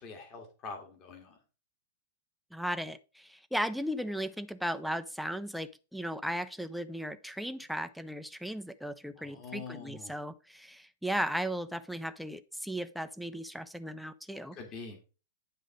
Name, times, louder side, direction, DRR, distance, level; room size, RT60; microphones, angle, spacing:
voice 1, 0.0-1.4 9.2-10.1 14.5-15.0, left 4 dB, 35° left, 3 dB, 1.9 m, -44 dB
voice 2, 2.5-14.6, equal, ahead, 11 dB, 0.6 m, -36 dB
10.0 x 3.7 x 5.2 m, 0.34 s
figure-of-eight pair, 100°, 0 cm